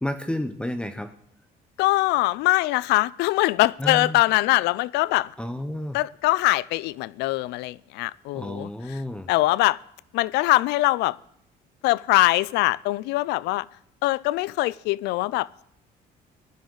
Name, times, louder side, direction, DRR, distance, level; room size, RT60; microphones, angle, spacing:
voice 1, 0.0-1.1 3.8-4.2 5.4-6.0 8.3-9.3, left 1 dB, 5° left, 0.7 m, -31 dB
voice 2, 1.8-5.3 5.9-9.0 9.3-9.8 10.1-11.2 11.8-13.7 14.0-15.6, left 19 dB, 90° left, 0.4 m, -22 dB
15.5 x 11.5 x 4.0 m
cardioid pair, 110°, 17 cm